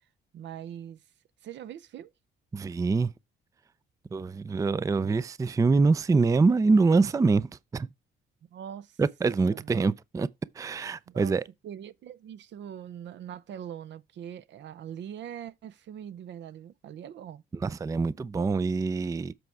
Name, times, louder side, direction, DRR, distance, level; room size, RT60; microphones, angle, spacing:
voice 1, 0.3-1.0 1.4-2.1 8.5-9.0 9.5-9.7 11.1-11.4 11.6-17.4, right 9 dB, 65° right, 0.6 m, -42 dB
voice 2, 2.5-3.1 4.1-7.9 9.0-10.3 10.6-11.4 17.5-19.3, right 4 dB, 15° right, 0.4 m, -25 dB
7.8 x 4.6 x 4.7 m
cardioid pair, 90°, 20 cm